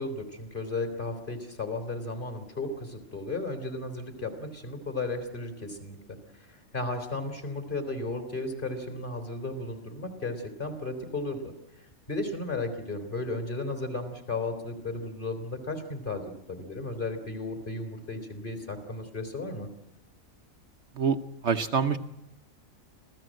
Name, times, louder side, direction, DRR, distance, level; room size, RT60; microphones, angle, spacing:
voice 1, 0.0-6.0 6.3-19.7, left 2 dB, 35° left, 8 dB, 3.7 m, -34 dB
voice 2, 21.4-22.0, right 6 dB, 55° right, 8 dB, 1.2 m, -25 dB
26.5 x 16.5 x 7.7 m, 0.93 s
omnidirectional pair, 1.5 m